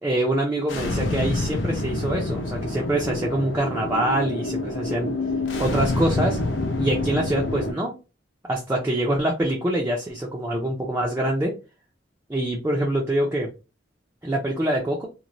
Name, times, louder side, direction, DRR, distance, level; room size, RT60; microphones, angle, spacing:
voice 1, 0.0-5.1 5.6-6.4 6.8-7.9 8.5-11.5 12.3-13.5 14.2-15.1, right 1 dB, 15° right, -2 dB, 0.4 m, -25 dB
sound 1, 0.7-7.7, left 2 dB, 90° left, 0.5 m, -27 dB
3.0 x 2.1 x 2.5 m, 0.30 s
head